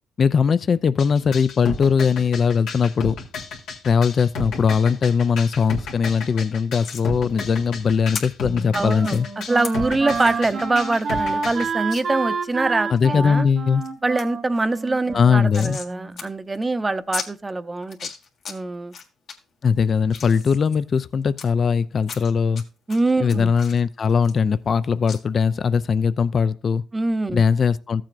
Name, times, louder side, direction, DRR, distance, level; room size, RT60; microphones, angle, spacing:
voice 1, 0.2-3.2 3.8-9.3 12.9-13.8 15.1-15.8 19.6-22.6 23.2-26.8 27.3-28.0, left 6 dB, 45° left, 0.4 m, -20 dB
sound 1, 1.0-11.7, left 3 dB, 90° left, 1.7 m, -32 dB
sound 2, 6.8-7.1 8.1-8.2 9.0-9.2 9.6-9.7 10.1-10.4 10.8-10.9 11.1-11.2 11.9-12.0 12.5-13.1 13.5-13.9 14.2-14.3 14.6-15.9 16.2-16.3 16.5-16.6 17.1-17.3 17.8-18.5 18.9-19.3 19.8-21.5 22.0-22.6 22.9-24.8 25.1-25.2, left 6 dB, 70° left, 1.6 m, -35 dB
Wind instrument woodwind instrument, 8.4-16.2, right 4 dB, 55° right, 1.0 m, -29 dB
voice 2, 8.7-13.5 14.0-18.0 18.5-18.9 22.9-23.5 26.9-27.4, right 2 dB, 20° right, 0.6 m, -24 dB
14.0 x 7.5 x 2.5 m
cardioid pair, 90°, 0 cm